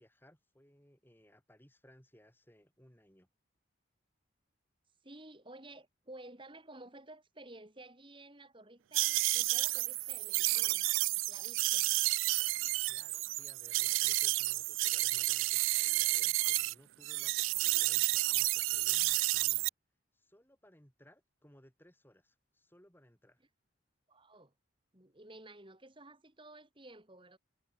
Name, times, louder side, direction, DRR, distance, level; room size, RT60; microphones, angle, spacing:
voice 1, 0.0-3.3 11.9-12.1 12.9-19.7 20.1-23.4, equal, 10° left, 7.1 m, -62 dB
voice 2, 5.0-10.9 11.3-11.9 24.1-24.5 24.9-27.4, right 2 dB, 25° right, 3.6 m, -53 dB
sound 1, 8.9-16.7 17.0-19.7, right 20 dB, 90° right, 0.4 m, -31 dB
head